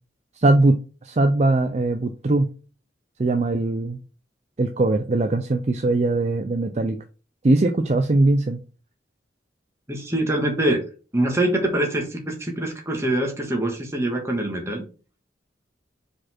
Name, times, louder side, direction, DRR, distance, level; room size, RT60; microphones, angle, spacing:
voice 1, 0.4-2.5 3.2-4.0 4.6-7.0 7.4-8.6, right 2 dB, 35° right, 7 dB, 0.5 m, -20 dB
voice 2, 9.9-10.8 11.1-14.8, right 1 dB, 15° right, 1 dB, 1.5 m, -24 dB
5.1 x 4.2 x 4.4 m, 0.36 s
head